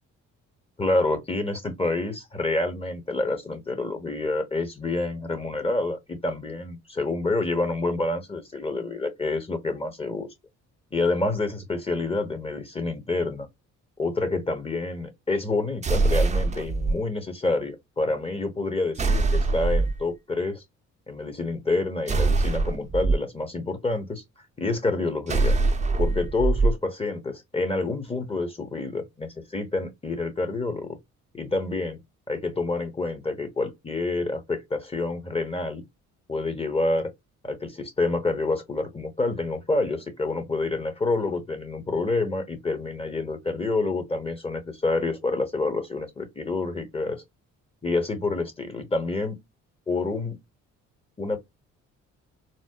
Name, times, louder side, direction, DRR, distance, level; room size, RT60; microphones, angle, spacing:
voice 1, 0.8-10.3 10.9-13.5 14.0-20.6 21.1-24.2 24.6-25.6 26.0-31.0 31.3-32.0 32.3-35.8 36.3-37.1 37.4-47.2 47.8-49.4 49.9-50.4 51.2-51.4, left 2 dB, 20° left, 1.0 m, -28 dB
sound 1, 15.8-16.9 19.0-20.0 22.1-23.2 25.3-26.7, right 3 dB, 25° right, 0.5 m, -23 dB
4.1 x 2.0 x 2.3 m
cardioid pair, 90°, 30 cm